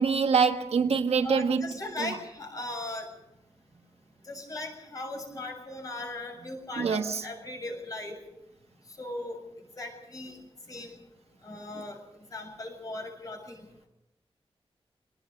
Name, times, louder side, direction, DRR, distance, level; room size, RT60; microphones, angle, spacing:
voice 1, 0.0-1.6 6.8-7.2, right 5 dB, 80° right, 1.5 m, -24 dB
voice 2, 1.2-3.1 4.2-8.2 9.0-9.4 9.8-10.4 10.7-11.0 11.4-12.0 12.3-13.7, left 2 dB, 35° left, 7.2 m, -38 dB
26.0 x 19.0 x 5.3 m
wide cardioid pair, 175°, 10 cm